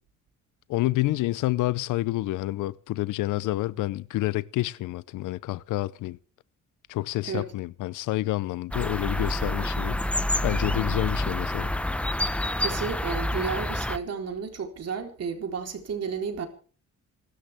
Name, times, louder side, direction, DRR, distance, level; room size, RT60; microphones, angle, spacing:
voice 1, 0.7-6.2 6.9-10.0 10.4-11.7, left 17 dB, 85° left, 0.7 m, -28 dB
sound 1, 8.7-14.0, left 1 dB, 5° left, 1.0 m, -28 dB
voice 2, 12.6-16.5, right 6 dB, 55° right, 4.0 m, -32 dB
26.5 x 13.0 x 3.6 m
cardioid pair, 90°, 30 cm